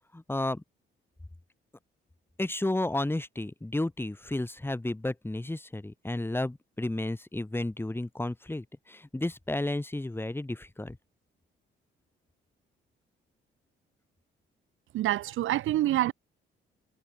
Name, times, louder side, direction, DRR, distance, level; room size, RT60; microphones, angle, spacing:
voice 1, 0.1-0.6 2.4-11.0, left 1 dB, 10° left, 5.5 m, -32 dB
voice 2, 14.9-16.1, right 14 dB, 85° right, 6.9 m, -26 dB
cardioid pair, 90°, 20 cm